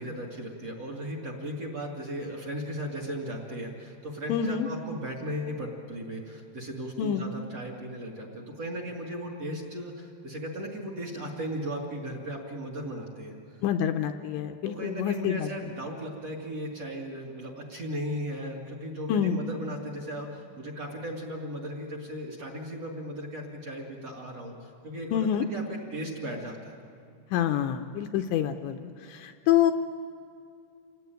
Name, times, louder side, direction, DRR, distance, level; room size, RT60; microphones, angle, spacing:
voice 1, 0.0-13.6 14.6-26.8, equal, 40° right, 0 dB, 2.5 m, -36 dB
voice 2, 4.3-4.7 7.0-7.2 13.6-15.5 19.1-19.4 25.1-25.5 27.3-29.7, left 10 dB, 80° left, 6 dB, 2.8 m, -27 dB
27.5 x 19.0 x 9.3 m, 2.6 s
omnidirectional pair, 5.6 m